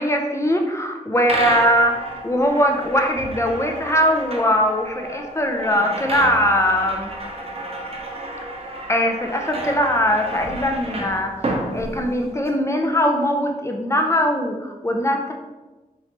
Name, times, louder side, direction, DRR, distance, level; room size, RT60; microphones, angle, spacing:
voice 1, 0.0-1.9 2.2-7.1 8.9-11.3 11.7-15.3, equal, 20° left, 3 dB, 0.5 m, -20 dB
sound 1, 1.2-12.5, right 1 dB, 40° right, 0.7 m, -31 dB
4.3 x 3.2 x 2.9 m, 1.1 s
wide cardioid pair, 95°, 15 cm